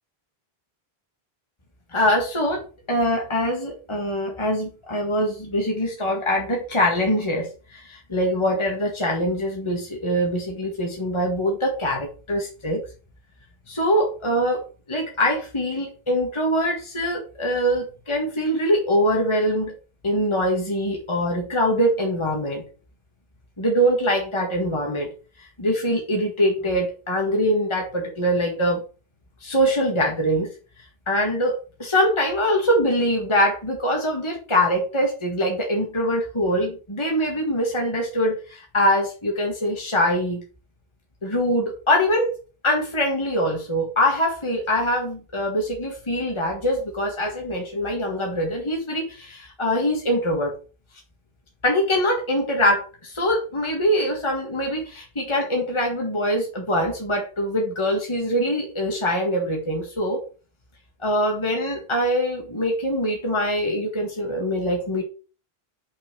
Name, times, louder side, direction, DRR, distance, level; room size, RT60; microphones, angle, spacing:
voice 1, 1.9-2.6 2.9-12.8 13.7-19.7 20.0-22.6 23.6-25.1 25.6-28.8 29.4-30.5 31.1-40.4 41.2-42.3 42.6-50.5 51.6-60.2 61.0-65.0, equal, 30° left, 0 dB, 1.8 m, -23 dB
6.0 x 5.8 x 6.0 m, 0.35 s
omnidirectional pair, 1.0 m